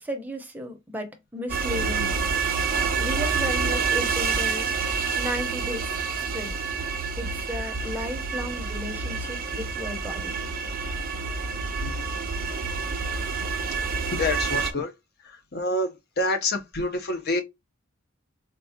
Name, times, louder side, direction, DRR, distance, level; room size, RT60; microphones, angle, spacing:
voice 1, 0.0-2.3 3.0-4.7 5.1-6.5 7.2-10.3, equal, 10° right, 0.7 m, -34 dB
sound 1, 1.5-14.7, right 5 dB, 45° right, 0.5 m, -28 dB
voice 2, 11.6-12.0 14.1-14.9 15.5-17.4, left 2 dB, 50° left, 0.8 m, -27 dB
4.0 x 2.3 x 2.7 m
head